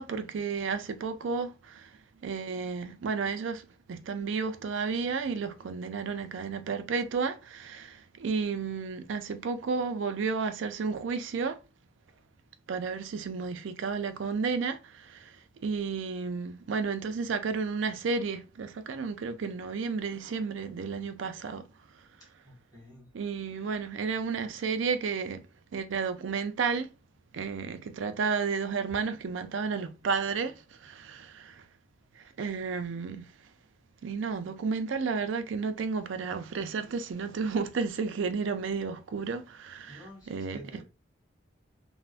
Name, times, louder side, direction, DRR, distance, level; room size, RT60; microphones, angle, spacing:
voice 1, 0.0-1.9 2.2-3.6 3.9-11.6 12.7-14.8 15.0-15.3 15.6-21.6 23.1-25.4 25.7-26.9 27.3-30.5 30.8-31.5 32.4-33.3 34.0-40.8, right 5 dB, 75° right, 0.4 m, -32 dB
voice 2, 22.2-23.1 39.9-40.8, equal, 20° left, 1.7 m, -50 dB
3.2 x 2.1 x 2.4 m
head